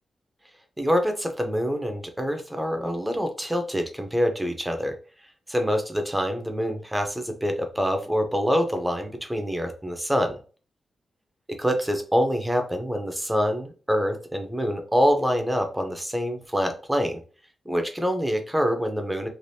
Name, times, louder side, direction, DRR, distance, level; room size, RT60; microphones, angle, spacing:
voice 1, 0.8-4.9 5.5-10.4 11.6-17.2 17.7-19.3, equal, 5° right, 5 dB, 0.6 m, -25 dB
3.2 x 2.4 x 2.7 m, 0.37 s
wide cardioid pair, 140°, 0 cm